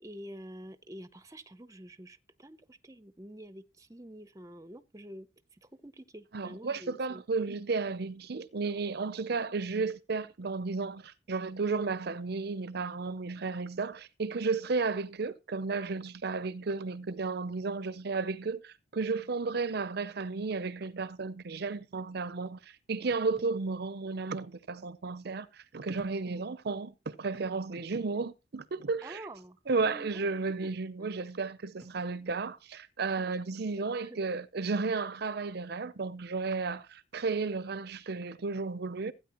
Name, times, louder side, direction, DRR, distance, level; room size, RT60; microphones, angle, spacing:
voice 1, 0.0-7.2 26.2-26.4 29.0-29.6 29.8-30.2 31.0-31.1 33.2-33.4 33.7-34.2, right 1 dB, 20° right, 0.7 m, -48 dB
voice 2, 6.3-29.2 29.7-39.1, right 4 dB, 60° right, 0.6 m, -33 dB
sound 1, 23.1-23.7 24.8-24.9 25.9-26.4 26.8-26.9 27.3-27.6 29.7-30.0 31.8-32.1, equal, 5° left, 1.1 m, -58 dB
16.0 x 9.2 x 3.0 m
head